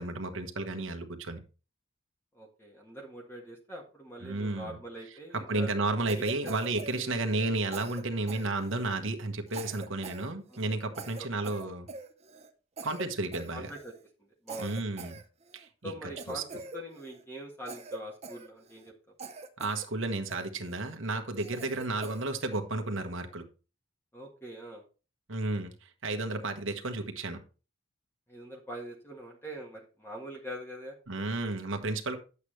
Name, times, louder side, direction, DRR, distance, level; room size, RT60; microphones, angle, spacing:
voice 1, 0.0-1.4 4.2-4.8 5.3-11.9 12.8-13.7 14.6-15.2 15.5-15.9 16.3-16.4 19.6-23.4 25.3-27.4 31.1-32.2, right 2 dB, 75° right, 1.2 m, -32 dB
voice 2, 2.3-5.7 6.2-7.3 10.5-10.8 11.2-11.3 13.5-13.9 14.2-14.8 15.8-18.9 24.1-24.8 28.3-31.0, right 1 dB, 10° left, 1.6 m, -43 dB
Cough, 6.1-7.5 7.7-9.0 9.5-10.3 10.5-10.7 10.9-12.5 12.8-13.1 13.3-14.0 14.5-15.7 16.2-17.2 17.7-18.9 19.2-19.9 20.3-20.8 21.4-22.3, right 3 dB, 30° right, 0.8 m, -44 dB
9.7 x 8.3 x 3.3 m
head